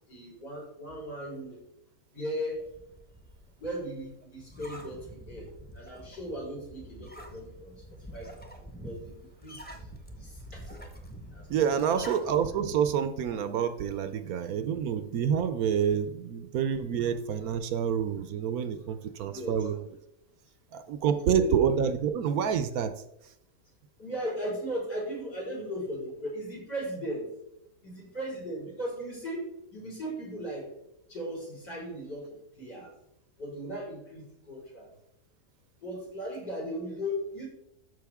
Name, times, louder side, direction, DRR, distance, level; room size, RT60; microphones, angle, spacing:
voice 1, 0.1-1.6 2.1-2.6 3.6-5.5 5.7-7.8 8.1-9.9 10.2-10.7 11.3-12.1 19.3-19.7 21.3-21.5 24.0-27.3 27.8-29.4 29.7-30.7 31.1-32.9 33.4-34.9 35.8-37.5, equal, 85° left, -5 dB, 4.7 m, -37 dB
sound 1, 2.5-12.6, equal, 5° left, 0.9 m, -47 dB
voice 2, 11.5-19.8 20.7-22.9, right 8 dB, 70° right, 11 dB, 1.0 m, -28 dB
12.5 x 5.3 x 3.5 m, 0.82 s
omnidirectional pair, 1.8 m